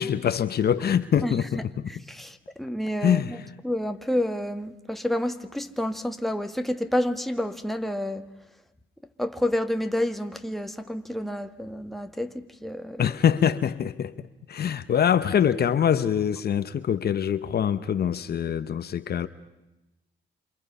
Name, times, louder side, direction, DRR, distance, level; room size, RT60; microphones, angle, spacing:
voice 1, 0.0-1.6 3.0-3.3 13.0-19.3, left 8 dB, 55° left, 1.0 m, -24 dB
voice 2, 1.2-8.3 9.2-13.1, left 1 dB, ahead, 1.7 m, -29 dB
28.0 x 26.5 x 5.6 m
cardioid pair, 90°, 20 cm